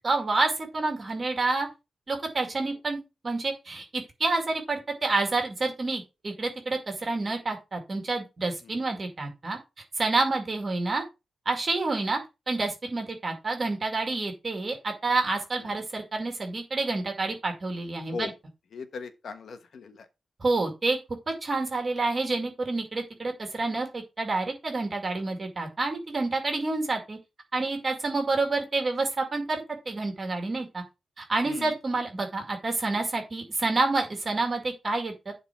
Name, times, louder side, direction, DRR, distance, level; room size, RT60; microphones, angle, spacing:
voice 1, 0.0-1.7 2.1-9.6 10.0-11.0 11.5-12.2 12.5-18.3 20.4-21.0 21.3-27.2 27.5-30.8 31.2-35.3, right 3 dB, 30° right, 2.1 m, -28 dB
voice 2, 18.7-20.1 31.4-31.7, left 5 dB, 65° left, 1.2 m, -38 dB
11.0 x 3.9 x 4.6 m
wide cardioid pair, 175°, 0 cm